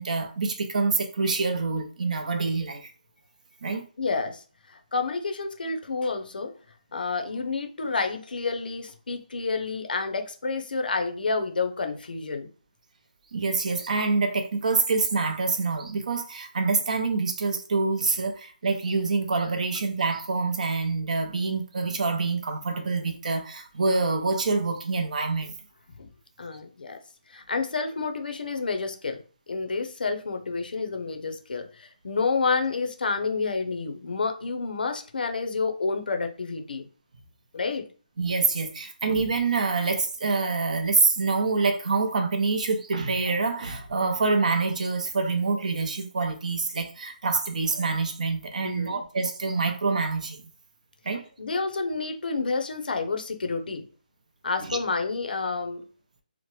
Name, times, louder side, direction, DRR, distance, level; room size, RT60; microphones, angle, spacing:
voice 1, 0.0-2.9 3.6-3.8 13.3-25.5 38.2-50.4 51.0-51.2 54.7-54.8, right 4 dB, 55° right, 0.6 m, -26 dB
voice 2, 3.7-6.5 6.9-12.5 26.0-26.1 26.4-27.0 27.3-29.2 29.5-36.9 37.5-37.9 48.6-49.0 51.4-53.8 54.4-55.8, left 4 dB, 75° left, 0.6 m, -29 dB
2.9 x 2.1 x 3.1 m
hypercardioid pair, 165°, 5 cm